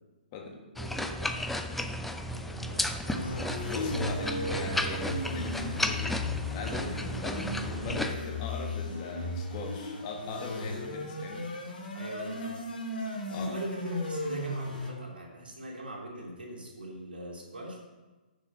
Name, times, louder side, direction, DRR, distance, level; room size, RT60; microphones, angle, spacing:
voice 1, 0.7-1.4 2.3-3.4 11.9-12.5 13.3-17.8, right 1 dB, 90° right, -3 dB, 2.8 m, -42 dB
sound 1, 0.8-8.1, left 1 dB, 5° left, 0.4 m, -33 dB
sound 2, 3.0-14.9, left 1 dB, 70° left, 3.0 m, -35 dB
voice 2, 3.6-6.2 6.5-11.5 13.3-13.6, left 4 dB, 35° left, 1 dB, 1.5 m, -40 dB
6.5 x 6.5 x 5.5 m, 1.2 s
hypercardioid pair, 140°, 5 cm